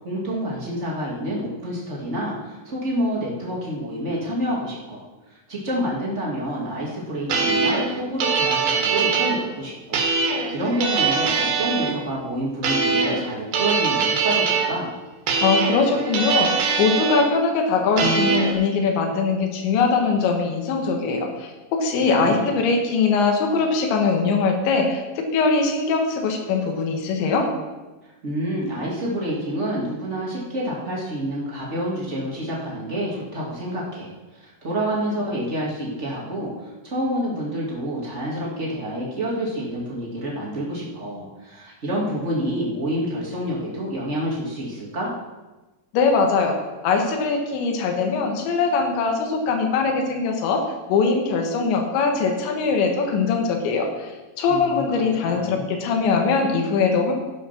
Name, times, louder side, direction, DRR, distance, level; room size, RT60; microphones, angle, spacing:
voice 1, 0.0-14.9 21.9-22.5 28.0-45.1 54.5-54.8 55.2-55.7, equal, 85° right, -5 dB, 0.6 m, -28 dB
sound 1, 7.3-9.4 9.9-11.9 12.6-13.3 13.5-14.7 15.3-17.3 18.0-18.5, right 5 dB, 65° right, 3.1 m, -22 dB
voice 2, 15.4-27.5 45.9-46.6 46.8-50.6 50.9-57.1, left 4 dB, 85° left, 2 dB, 3.7 m, -21 dB
14.5 x 6.1 x 5.9 m, 1.1 s
omnidirectional pair, 5.1 m